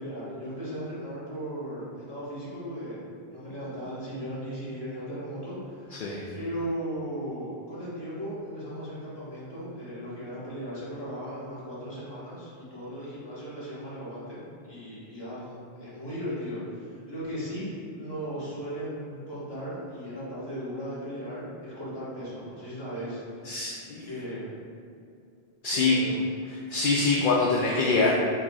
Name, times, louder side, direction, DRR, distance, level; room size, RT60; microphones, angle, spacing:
voice 1, 0.0-3.0 3.3-5.9 6.3-23.5 24.0-24.5 25.7-26.2, equal, 25° left, -10 dB, 1.5 m, -37 dB
voice 2, 23.4-24.0 25.6-26.0 26.7-28.1, left 3 dB, 60° left, -4 dB, 0.7 m, -24 dB
4.8 x 4.3 x 2.4 m, 2.4 s
omnidirectional pair, 1.0 m